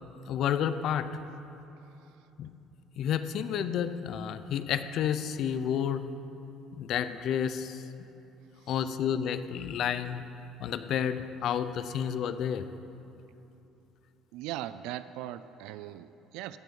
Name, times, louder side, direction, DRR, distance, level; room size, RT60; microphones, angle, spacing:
voice 1, 0.3-1.1 2.4-2.5 3.0-6.1 6.8-7.8 8.7-10.2 10.6-12.7, left 9 dB, 50° left, 12 dB, 0.6 m, -30 dB
voice 2, 1.8-2.1 8.6-8.7 14.3-16.6, right 13 dB, 90° right, 13 dB, 0.4 m, -40 dB
16.0 x 9.2 x 5.5 m, 2.9 s
cardioid pair, 165°, 0 cm